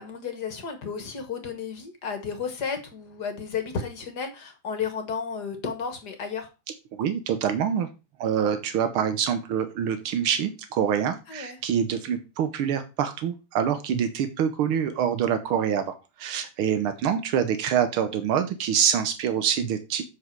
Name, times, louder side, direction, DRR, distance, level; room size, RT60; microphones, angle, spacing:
voice 1, 0.0-6.5 11.3-11.6, left 6 dB, 55° left, 6 dB, 1.9 m, -33 dB
voice 2, 7.0-7.9 8.2-20.0, right 8 dB, 90° right, 8 dB, 1.8 m, -25 dB
7.5 x 6.6 x 4.6 m, 0.28 s
omnidirectional pair, 2.3 m